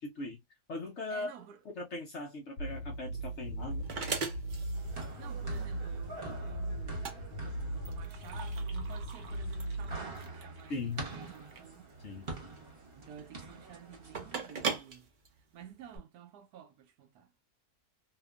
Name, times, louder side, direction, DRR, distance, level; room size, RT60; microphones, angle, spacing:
voice 1, 0.0-0.4 0.7-1.3 1.8-3.8 10.7-11.0 12.0-12.3, left 3 dB, 65° left, 0.7 m, -39 dB
voice 2, 1.1-1.6 4.9-11.9 13.0-17.3, right 8 dB, 80° right, 1.1 m, -52 dB
sound 1, 2.6-10.0, right 1 dB, 85° left, 1.2 m, -38 dB
sound 2, 2.7-16.0, right 5 dB, 55° right, 0.5 m, -42 dB
sound 3, 4.7-14.4, right 3 dB, 40° right, 1.0 m, -46 dB
2.8 x 2.4 x 2.2 m
omnidirectional pair, 1.7 m